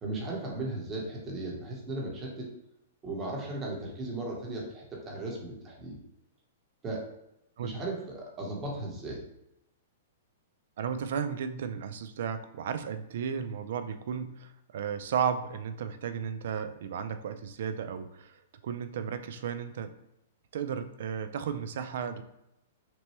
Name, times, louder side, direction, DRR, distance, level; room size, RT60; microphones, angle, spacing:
voice 1, 0.0-2.5 3.0-6.0 6.8-7.0 7.6-9.2, right 2 dB, 20° right, -2 dB, 1.0 m, -36 dB
voice 2, 10.8-19.9 20.5-22.2, right 7 dB, 60° right, 9 dB, 0.4 m, -34 dB
5.9 x 2.2 x 3.0 m, 0.84 s
hypercardioid pair, 160°, 0 cm